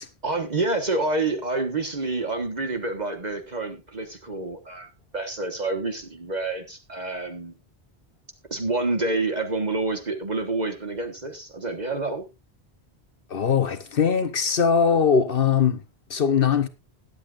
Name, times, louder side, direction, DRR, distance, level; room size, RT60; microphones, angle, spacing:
voice 1, 0.2-7.6 8.5-12.2, right 3 dB, 40° right, 1.5 m, -28 dB
voice 2, 13.3-15.8 16.1-16.7, left 6 dB, 60° left, 1.0 m, -21 dB
20.5 x 8.3 x 2.5 m
omnidirectional pair, 1.1 m